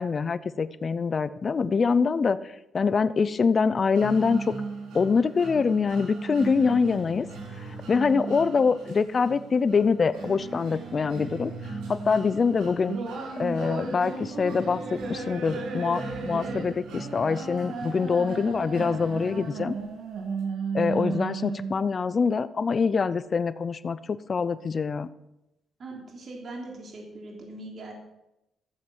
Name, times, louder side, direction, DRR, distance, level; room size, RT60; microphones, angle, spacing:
voice 1, 0.0-2.4 2.7-4.6 4.9-7.3 7.9-11.5 11.9-13.0 13.4-19.7 20.7-25.1, left 5 dB, 40° left, 15 dB, 0.7 m, -24 dB
sound 1, 3.9-19.9, right 3 dB, 85° right, 3.6 m, -39 dB
sound 2, 12.9-21.9, right 4 dB, 70° right, 2.3 m, -34 dB
voice 2, 25.8-27.9, right 2 dB, 50° right, 1 dB, 3.3 m, -40 dB
15.0 x 7.3 x 6.2 m, 0.90 s
cardioid pair, 90°, 0 cm